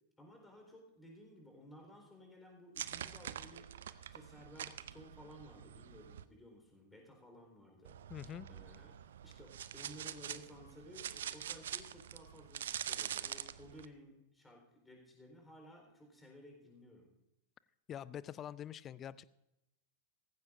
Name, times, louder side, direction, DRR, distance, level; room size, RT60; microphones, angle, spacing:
voice 1, 0.2-3.7 4.1-8.0 8.5-9.0 9.2-17.1, equal, 10° left, 1 dB, 4.1 m, -56 dB
sound 1, 2.8-6.2 7.9-13.9, right 10 dB, 60° right, 0.5 m, -45 dB
voice 2, 8.1-8.5 17.9-19.2, left 10 dB, 30° left, 20 dB, 0.4 m, -45 dB
17.0 x 15.0 x 2.6 m, 0.90 s
figure-of-eight pair, 90°, 0 cm